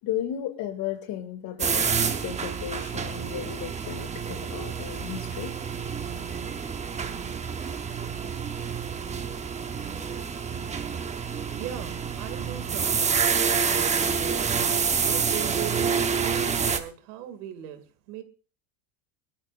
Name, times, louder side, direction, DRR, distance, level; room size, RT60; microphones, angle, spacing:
voice 1, 0.0-5.5, left 11 dB, 50° left, 2.4 m, -34 dB
sound 1, 1.6-16.8, right 6 dB, 15° right, 0.8 m, -28 dB
voice 2, 11.5-18.2, right 11 dB, 90° right, 2.4 m, -39 dB
22.5 x 13.0 x 2.5 m
cardioid pair, 155°, 46 cm